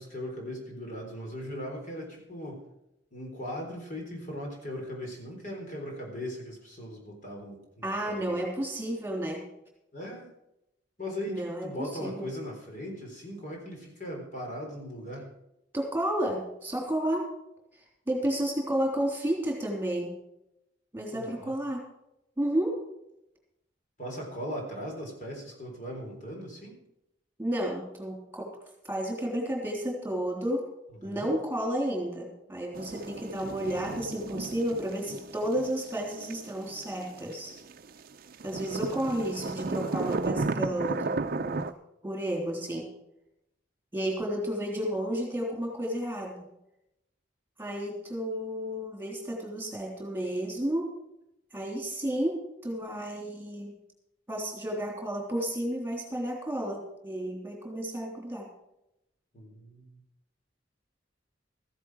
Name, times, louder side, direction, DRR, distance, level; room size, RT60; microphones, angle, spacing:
voice 1, 0.0-2.6 3.1-8.3 9.9-10.3 11.0-15.3 21.1-21.5 24.0-26.8 31.0-31.3 38.7-39.1 59.3-60.0, equal, 45° left, 1 dB, 3.9 m, -39 dB
voice 2, 7.8-9.4 11.3-12.3 15.7-17.3 17.7-20.1 20.9-21.8 22.4-22.8 27.4-28.5 28.8-30.6 31.0-37.5 38.4-41.7 42.0-42.9 43.9-46.4 47.6-50.9 51.5-53.7 54.3-58.5, right 1 dB, 10° right, 0 dB, 3.4 m, -32 dB
sound 1, 32.7-38.0 38.3-41.7, right 3 dB, 50° right, 0.6 m, -34 dB
14.5 x 11.0 x 4.8 m, 0.84 s
head